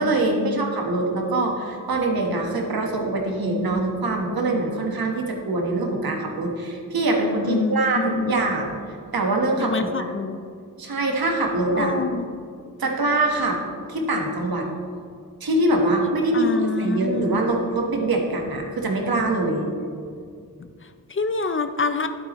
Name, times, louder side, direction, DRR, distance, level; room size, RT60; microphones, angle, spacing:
voice 1, 0.0-8.8 9.1-9.9 10.8-11.9 12.8-13.6 13.9-14.7 15.4-19.7, right 2 dB, 85° right, 1 dB, 1.4 m, -23 dB
voice 2, 7.4-8.3 9.6-10.4 11.7-12.3 16.3-17.4 20.6-22.1, left 4 dB, 35° left, 9 dB, 0.5 m, -26 dB
11.5 x 8.5 x 3.1 m, 2.3 s
wide cardioid pair, 115°, 35 cm